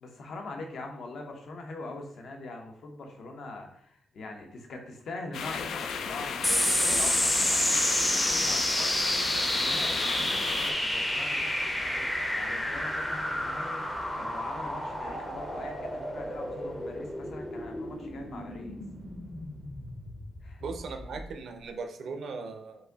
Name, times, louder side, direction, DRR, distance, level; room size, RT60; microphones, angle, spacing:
voice 1, 0.0-9.0 9.3-12.1 12.3-13.8 14.1-18.8 20.4-20.6, left 2 dB, 55° left, 3 dB, 0.8 m, -43 dB
sound 1, 5.3-10.7, left 6 dB, 75° left, 0.4 m, -35 dB
sound 2, 6.4-21.2, left 1 dB, 10° left, 0.6 m, -30 dB
voice 2, 20.6-22.9, right 4 dB, 60° right, 6 dB, 0.6 m, -38 dB
4.8 x 2.6 x 3.9 m, 0.66 s
wide cardioid pair, 170°, 0 cm